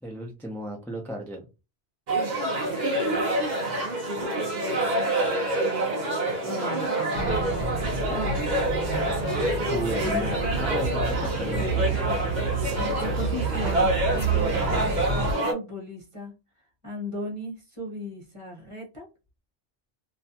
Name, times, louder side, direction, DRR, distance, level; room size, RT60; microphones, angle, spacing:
voice 1, 0.0-1.5 4.9-5.4 9.7-12.1, right 1 dB, 5° left, -1 dB, 0.3 m, -35 dB
sound 1, 2.1-15.5, right 1 dB, 45° right, 0.7 m, -27 dB
voice 2, 6.4-8.5 10.1-10.3 11.8-12.4 12.8-16.3 16.8-19.1, left 1 dB, 30° right, -2 dB, 1.0 m, -37 dB
sound 2, 7.1-15.3, right 4 dB, 85° right, 0.9 m, -29 dB
2.6 x 2.2 x 2.7 m, 0.28 s
omnidirectional pair, 1.2 m